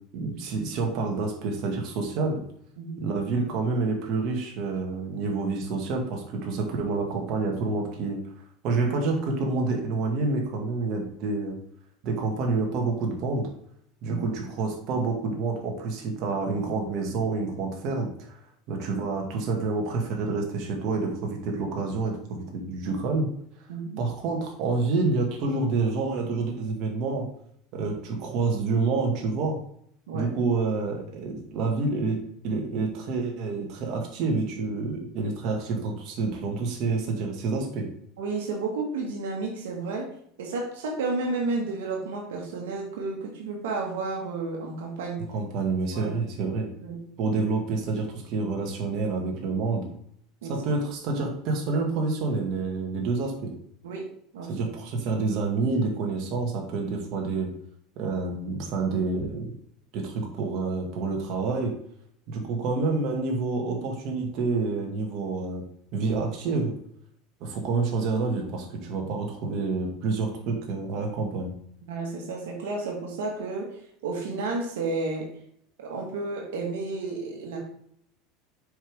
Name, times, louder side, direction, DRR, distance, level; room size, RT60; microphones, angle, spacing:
voice 1, 0.1-2.4 3.0-8.2 8.6-11.6 12.0-13.5 14.0-18.4 18.7-23.3 24.0-27.3 27.7-29.6 30.1-32.2 32.4-37.9 45.3-46.7 47.2-49.8 50.5-53.5 54.5-57.5 58.0-59.5 59.9-61.7 62.3-65.6 65.9-66.8 67.4-71.5, right 3 dB, 55° right, 1 dB, 2.0 m, -28 dB
voice 2, 2.8-3.1 14.1-14.2 23.7-24.0 30.1-30.3 38.2-45.3 45.9-46.2 46.4-47.4 50.4-50.7 53.8-54.1 54.3-54.7 71.9-75.4 75.8-77.7, right 3 dB, 90° right, 0 dB, 1.7 m, -32 dB
7.2 x 5.2 x 3.6 m, 0.67 s
supercardioid pair, 120°, 0 cm